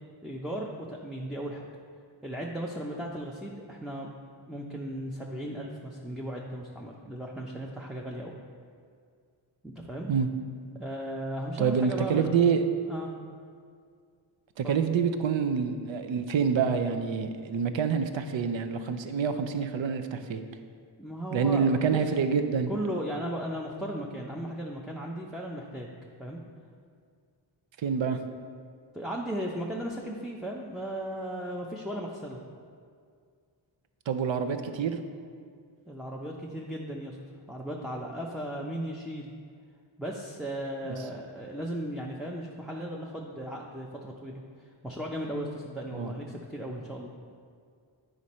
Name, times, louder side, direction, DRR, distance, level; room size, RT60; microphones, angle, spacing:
voice 1, 0.2-1.7 2.2-4.1 4.5-8.3 9.6-10.1 10.7-12.3 12.9-13.1 14.6-14.7 21.0-22.0 22.7-25.9 26.2-26.4 28.9-32.4 35.9-37.2 37.5-39.3 40.0-47.1, right 1 dB, ahead, -2 dB, 0.5 m, -36 dB
voice 2, 11.6-12.6 14.6-20.4 21.3-22.7 27.8-28.2 34.1-35.0 45.9-46.1, right 6 dB, 70° right, 8 dB, 0.7 m, -27 dB
9.4 x 5.1 x 4.2 m, 2.2 s
wide cardioid pair, 115°, 48 cm